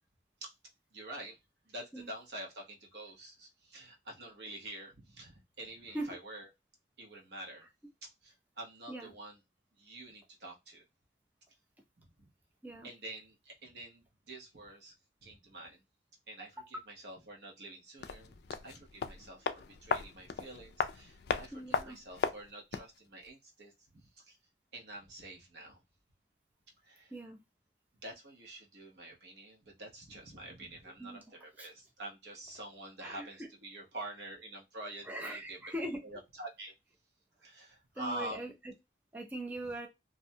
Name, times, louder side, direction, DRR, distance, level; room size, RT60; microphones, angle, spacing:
voice 1, 0.9-1.4 1.7-6.5 7.0-7.7 8.2-9.4 9.8-10.8 12.0-12.1 12.8-14.9 15.2-15.8 16.3-18.4 18.6-24.4 24.7-25.8 26.8-27.1 28.0-35.6 36.0-36.7 37.4-38.5, right 1 dB, 70° right, -1 dB, 0.9 m, -47 dB
sound 1, 18.0-23.0 23.2-23.3, left 5 dB, 65° left, 0.3 m, -36 dB
voice 2, 21.5-22.0 27.1-27.4 31.0-31.2 31.6-31.7 33.0-33.5 35.0-36.0 37.9-38.7 39.1-39.9, right 1 dB, 10° right, 1 dB, 0.4 m, -41 dB
2.6 x 2.1 x 2.6 m, 0.21 s
head